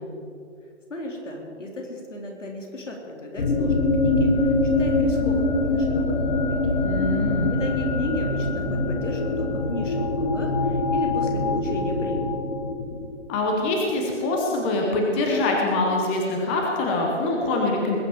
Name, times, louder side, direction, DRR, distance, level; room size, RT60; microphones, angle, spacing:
voice 1, 0.9-6.8 7.5-12.4, left 1 dB, 75° left, 1 dB, 3.9 m, -34 dB
sound 1, 3.4-13.2, left 2 dB, 40° left, 1.7 m, -23 dB
voice 2, 6.8-7.5 13.3-18.0, left 2 dB, 10° left, 0 dB, 0.7 m, -24 dB
20.5 x 7.3 x 7.0 m, 2.4 s
figure-of-eight pair, 155°, 37 cm